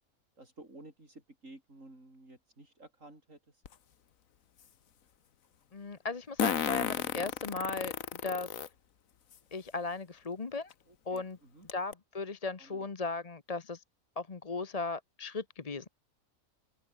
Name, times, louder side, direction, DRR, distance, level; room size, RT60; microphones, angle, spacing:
voice 1, 0.4-3.6 10.9-11.7 12.6-12.9, right 2 dB, 65° right, 6.9 m, -54 dB
Fart, 3.7-3.8 6.4-8.7 9.3-9.4 10.7-10.8 11.2-11.3 11.7-11.9, left 8 dB, 75° left, 1.5 m, -32 dB
voice 2, 5.7-7.9 8.2-8.5 9.5-10.7 11.1-11.4 11.7-13.8 14.2-15.9, left 3 dB, 30° left, 1.0 m, -37 dB
omnidirectional pair, 1.4 m